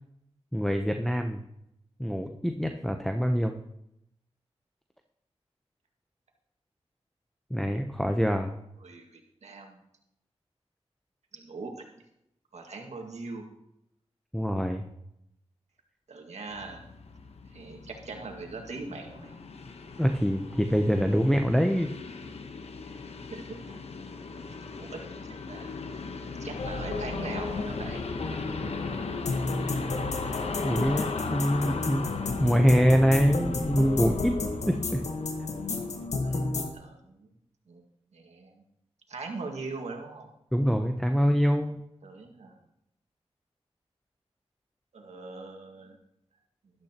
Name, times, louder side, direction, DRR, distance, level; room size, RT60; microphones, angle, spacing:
voice 1, 0.5-1.4 2.0-3.6 7.5-8.5 14.3-14.9 20.0-21.9 30.6-32.1 32.4-34.3 34.7-35.0 40.5-41.8, equal, 5° left, 4 dB, 0.8 m, -25 dB
voice 2, 8.8-9.8 11.3-11.7 12.5-13.4 16.1-16.8 17.5-19.3 22.9-23.0 23.3-23.8 24.5-25.0 25.3-25.7 26.4-28.0 28.3-29.1 36.2-37.3 37.7-37.8 38.1-38.6 39.1-40.3 42.0-42.6 44.9-46.0, right 3 dB, 75° right, 2 dB, 1.9 m, -41 dB
sound 1, 16.5-36.1, left 4 dB, 65° left, 1.0 m, -38 dB
sound 2, 26.6-36.7, left 3 dB, 80° left, 1.3 m, -32 dB
13.0 x 12.0 x 2.9 m, 0.80 s
wide cardioid pair, 75°, 11 cm